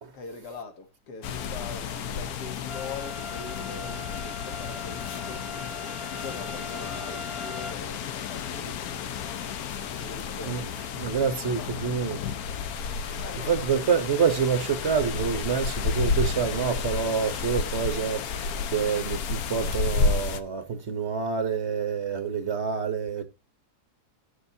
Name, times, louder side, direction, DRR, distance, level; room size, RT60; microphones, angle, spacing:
voice 1, 0.1-5.5 6.1-8.8 10.0-10.8 11.2-11.8 13.2-13.9, left 4 dB, 85° left, 1.9 m, -42 dB
sound 1, 1.2-20.4, left 5 dB, 70° left, 1.2 m, -31 dB
sound 2, 2.7-7.7, left 2 dB, 30° left, 0.6 m, -41 dB
voice 2, 10.9-12.2 13.0-13.2 13.5-23.2, right 6 dB, 45° right, 1.3 m, -27 dB
17.0 x 6.6 x 2.8 m
omnidirectional pair, 1.7 m